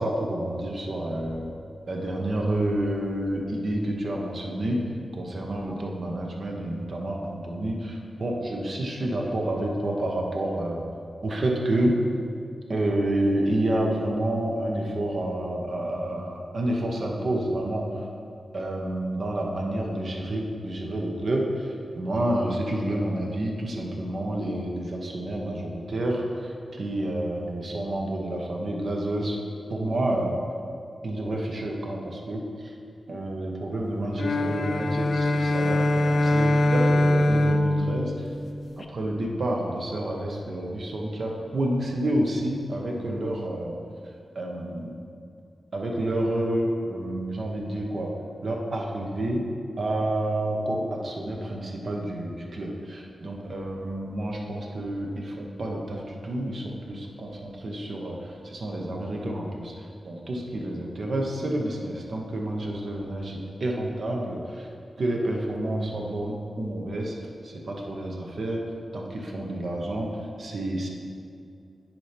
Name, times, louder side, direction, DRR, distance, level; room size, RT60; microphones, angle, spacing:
voice 1, 0.0-1.5 1.9-4.8 5.1-10.8 11.2-12.0 12.7-17.9 18.5-29.4 29.7-30.4 31.0-32.7 33.1-38.3 38.8-43.8 44.3-45.0 45.7-48.1 48.4-49.5 49.8-64.7 65.0-67.1 67.4-68.6 68.9-70.1 70.4-70.9, right 1 dB, 60° right, 0 dB, 1.0 m, -29 dB
sound 1, 34.1-38.8, left 1 dB, 50° left, 0.4 m, -23 dB
10.0 x 4.4 x 3.4 m, 2.4 s
cardioid pair, 65°, 0 cm